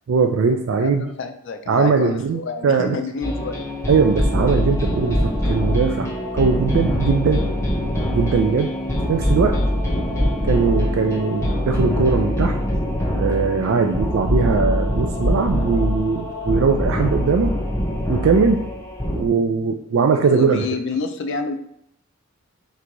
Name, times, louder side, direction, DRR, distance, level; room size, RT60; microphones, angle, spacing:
voice 1, 0.1-1.1 1.7-3.0 3.9-7.5 8.1-8.7 9.1-9.6 10.4-12.6 13.1-17.5 18.1-18.6 19.1-20.7, right 5 dB, 60° right, 5 dB, 0.3 m, -20 dB
voice 2, 0.8-3.6 20.2-21.5, left 4 dB, 55° left, 7 dB, 0.4 m, -28 dB
sound 1, 3.2-19.3, equal, 10° left, 0.6 m, -23 dB
3.3 x 3.1 x 3.8 m, 0.73 s
head